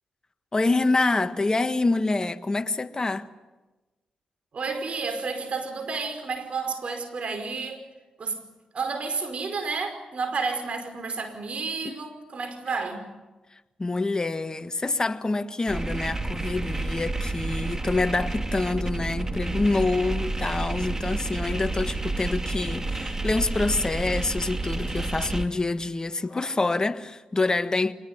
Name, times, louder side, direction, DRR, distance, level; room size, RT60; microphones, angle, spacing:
voice 1, 0.5-3.3 11.8-12.0 13.8-27.9, left 3 dB, 30° left, 1.6 m, -26 dB
voice 2, 4.5-7.8 8.2-8.4 8.7-13.0, right 4 dB, 60° right, 5.1 m, -31 dB
sound 1, 15.7-25.5, right 2 dB, 25° right, 2.1 m, -30 dB
25.0 x 20.0 x 9.6 m
cardioid pair, 55°, 2 cm